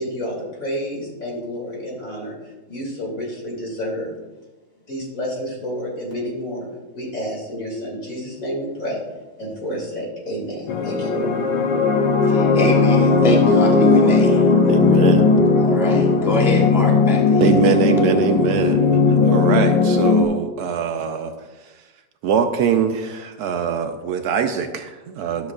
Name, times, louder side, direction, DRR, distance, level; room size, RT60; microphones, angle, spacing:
voice 1, 0.0-2.3 2.7-4.1 4.9-6.7 6.9-9.0 9.4-11.3, equal, 55° left, -4 dB, 3.1 m, -29 dB
sound 1, 10.7-20.3, left 4 dB, 85° left, 1.3 m, -17 dB
voice 2, 12.2-14.4 15.6-17.5, equal, ahead, -1 dB, 0.7 m, -24 dB
voice 3, 14.6-15.3 17.4-21.3 22.2-25.5, right 7 dB, 70° right, 7 dB, 1.0 m, -22 dB
12.5 x 6.8 x 2.4 m, 1.2 s
omnidirectional pair, 1.8 m